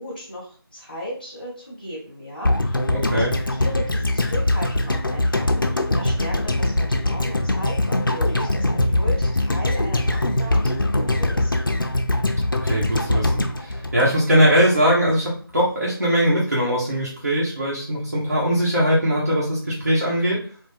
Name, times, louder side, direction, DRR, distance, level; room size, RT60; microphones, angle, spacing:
voice 1, 0.0-3.2 3.5-11.5, equal, 20° left, -6 dB, 1.2 m, -36 dB
sound 1, 2.4-14.7 14.9-15.0, left 1 dB, 60° left, 0.6 m, -22 dB
voice 2, 2.9-3.3 12.6-20.4, equal, 40° right, -7 dB, 1.2 m, -21 dB
3.7 x 2.4 x 4.3 m, 0.43 s
figure-of-eight pair, 170°, 13 cm